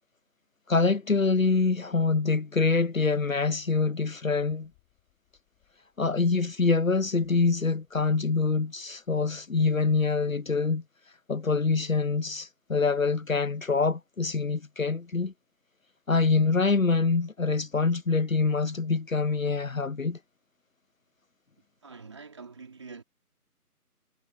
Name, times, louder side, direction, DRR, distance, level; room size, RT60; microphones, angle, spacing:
voice 1, 0.7-4.7 6.0-10.8 11.3-15.3 16.1-20.2, left 4 dB, 60° left, 1.0 m, -25 dB
sound 1, 4.1-9.2, left 26 dB, 5° left, 6.3 m, -72 dB
voice 2, 21.8-23.0, right 4 dB, 20° right, 3.1 m, -45 dB
figure-of-eight pair, 175°, 46 cm